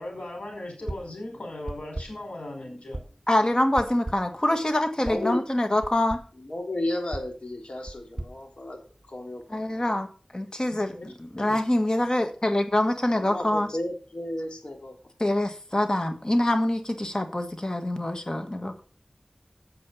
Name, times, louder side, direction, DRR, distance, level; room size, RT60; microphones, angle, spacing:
voice 1, 0.0-3.0 10.7-11.6, left 1 dB, 90° left, 1 dB, 5.1 m, -38 dB
sound 1, 0.9-1.2 1.7-2.3 2.9-3.3 3.8-4.4 5.0-5.3 5.8-6.4 7.1-9.2, right 1 dB, 35° right, 1.8 m, -39 dB
voice 2, 3.3-6.2 9.5-10.1 10.3-13.7 15.2-18.8, left 1 dB, 35° left, 7 dB, 1.7 m, -25 dB
voice 3, 5.0-5.4 6.4-8.8 9.1-9.9 13.1-14.9, left 1 dB, 60° left, 2 dB, 3.1 m, -33 dB
8.7 x 7.8 x 5.5 m, 0.36 s
wide cardioid pair, 40°, 2 cm